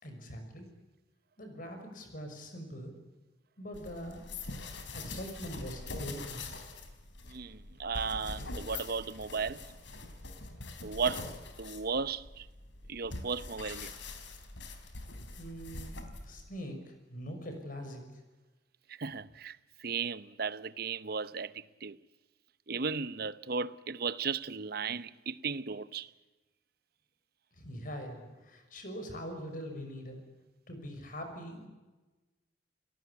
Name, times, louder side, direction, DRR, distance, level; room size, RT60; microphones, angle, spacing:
voice 1, 0.0-0.7 1.4-2.9 3.6-4.3 4.9-6.4 15.4-18.2 27.5-30.2 30.7-31.7, equal, 50° left, 6.0 m, -43 dB
sound 1, 3.7-16.5, left 3 dB, 85° left, 4.0 m, -44 dB
voice 2, 7.3-9.7 10.8-11.3 11.6-12.5 12.9-13.9 18.9-22.0 22.7-26.1, right 5 dB, 55° right, 0.8 m, -35 dB
29.5 x 18.0 x 8.4 m
head